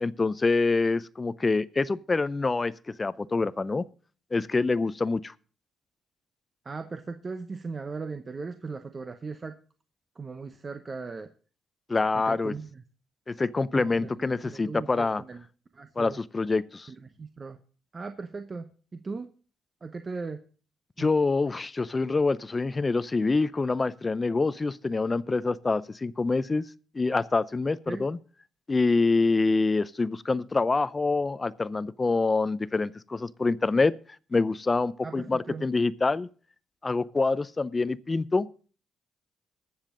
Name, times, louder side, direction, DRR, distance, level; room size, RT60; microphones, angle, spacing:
voice 1, 0.0-2.7 3.0-3.9 4.3-5.3 11.9-12.5 13.3-15.2 16.0-16.9 21.0-26.7 26.9-28.2 28.7-33.9 34.3-36.3 36.8-38.5, left 3 dB, 25° left, 0.6 m, -26 dB
voice 2, 6.6-9.6 10.2-11.3 12.1-12.8 13.7-15.4 15.7-16.2 16.9-17.6 17.9-19.3 19.8-20.4 21.0-21.1 27.9-28.1 35.0-35.7, right 4 dB, 30° right, 0.9 m, -38 dB
20.5 x 7.3 x 3.8 m
cardioid pair, 90°, 0 cm